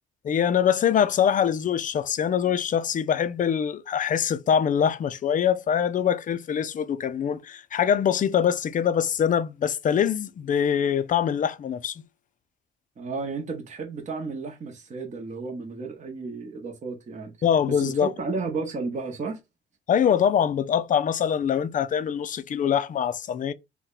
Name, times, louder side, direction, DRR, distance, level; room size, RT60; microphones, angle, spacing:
voice 1, 0.3-11.9 17.4-18.1 19.9-23.5, left 8 dB, 40° left, 0.4 m, -24 dB
voice 2, 13.0-17.3 17.6-19.4, right 4 dB, 35° right, 0.9 m, -33 dB
2.7 x 2.2 x 3.8 m
cardioid pair, 90°, 20 cm